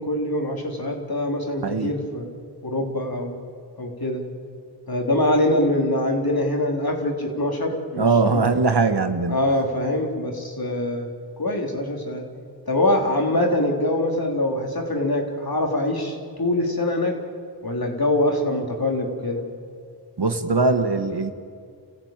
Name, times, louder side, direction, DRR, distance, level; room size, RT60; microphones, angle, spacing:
voice 1, 0.0-2.3 2.6-3.4 3.8-4.2 4.9-8.1 8.3-8.4 9.3-11.1 11.4-12.2 12.7-17.2 17.6-19.4, left 1 dB, 55° left, 1 dB, 3.7 m, -24 dB
voice 2, 8.0-9.4 20.2-21.3, right 3 dB, 65° right, 7 dB, 1.7 m, -21 dB
29.0 x 15.0 x 9.1 m, 2.2 s
wide cardioid pair, 45°, 43 cm